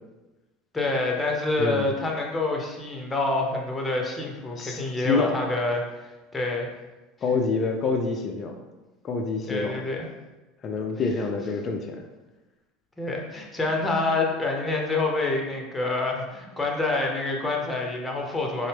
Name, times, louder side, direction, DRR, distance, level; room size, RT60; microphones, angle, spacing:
voice 1, 0.7-5.8 6.3-6.7 9.5-10.1 13.0-18.7, left 2 dB, 15° left, 0 dB, 0.8 m, -27 dB
voice 2, 4.6-5.4 7.2-8.6 9.0-9.8 10.6-12.0, left 4 dB, 40° left, 3 dB, 0.4 m, -27 dB
4.1 x 2.0 x 3.3 m, 1.1 s
hypercardioid pair, 90°, 0 cm